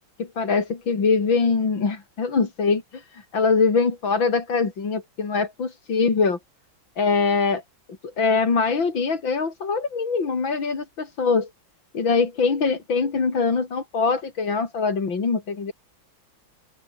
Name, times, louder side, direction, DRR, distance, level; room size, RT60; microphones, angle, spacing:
voice 1, 0.2-6.4 7.0-7.6 8.2-11.5 11.9-15.7, left 4 dB, 75° left, 4.0 m, -23 dB
open air
omnidirectional pair, 2.1 m